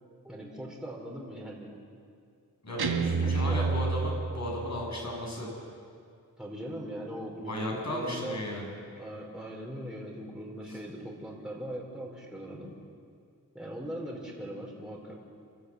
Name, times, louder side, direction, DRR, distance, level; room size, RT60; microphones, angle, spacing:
voice 1, 0.2-1.7 3.0-3.7 6.4-8.4 9.0-12.7 13.5-15.1, equal, ahead, -2 dB, 4.7 m, -40 dB
voice 2, 2.6-5.5 7.5-8.8 10.7-10.8, left 1 dB, 45° left, -1 dB, 7.1 m, -35 dB
Guitar, 2.8-4.8, right 4 dB, 75° right, 1.4 m, -29 dB
28.5 x 13.0 x 8.6 m, 2.3 s
wide cardioid pair, 85°, 38 cm